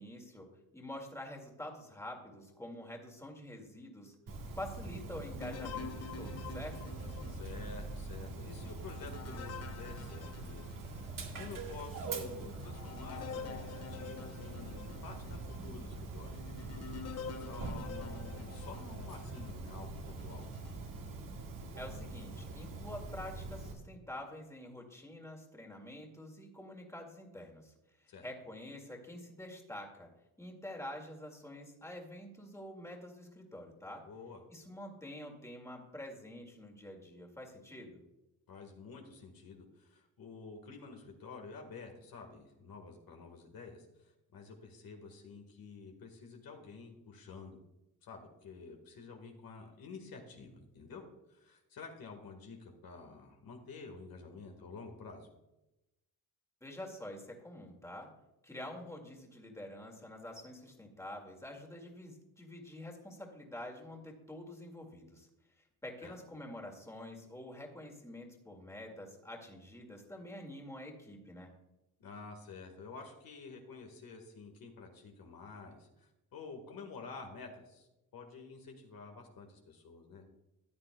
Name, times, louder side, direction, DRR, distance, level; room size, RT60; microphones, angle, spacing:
voice 1, 0.0-4.2 4.6-6.9 21.8-27.7 28.2-30.1 30.4-34.0 34.5-38.0 56.6-58.1 58.4-65.3 65.8-71.5, left 1 dB, 10° left, 1 dB, 2.1 m, -47 dB
Dog, 4.3-23.7, right 3 dB, 60° right, 1.7 m, -44 dB
sound 1, 5.4-11.2 11.7-11.8 12.4-19.6 20.2-20.8, left 6 dB, 40° left, 0.7 m, -48 dB
sound 2, 6.8-14.8, right 2 dB, 20° right, 2.2 m, -61 dB
voice 2, 7.3-16.4 17.3-20.5 28.1-28.2 34.0-34.4 38.5-47.6 48.0-51.0 51.3-55.3 66.0-66.1 72.0-80.2, left 4 dB, 70° left, 3 dB, 1.6 m, -50 dB
14.5 x 9.4 x 2.2 m, 0.95 s
cardioid pair, 95°, 37 cm